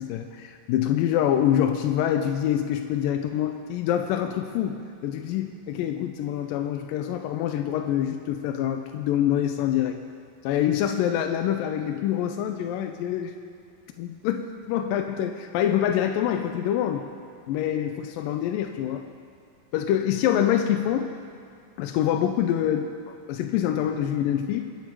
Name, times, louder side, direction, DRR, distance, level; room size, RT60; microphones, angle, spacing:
voice 1, 0.0-10.0 10.4-13.3 14.0-17.1 17.5-19.1 19.7-21.1 21.8-24.7, left 10 dB, 80° left, 6 dB, 2.0 m, -25 dB
23.5 x 8.4 x 4.7 m, 2.3 s
omnidirectional pair, 4.5 m